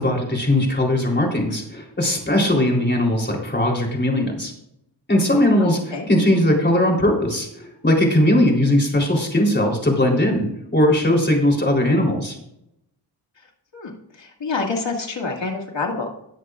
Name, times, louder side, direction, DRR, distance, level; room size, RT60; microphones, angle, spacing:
voice 1, 0.0-4.5 5.1-7.5 7.8-10.4 10.7-12.4, left 1 dB, 25° left, 0 dB, 3.6 m, -19 dB
voice 2, 5.6-6.1 13.7-16.1, left 4 dB, 80° left, 0 dB, 2.2 m, -27 dB
19.0 x 7.8 x 2.5 m, 0.78 s
wide cardioid pair, 80°, 44 cm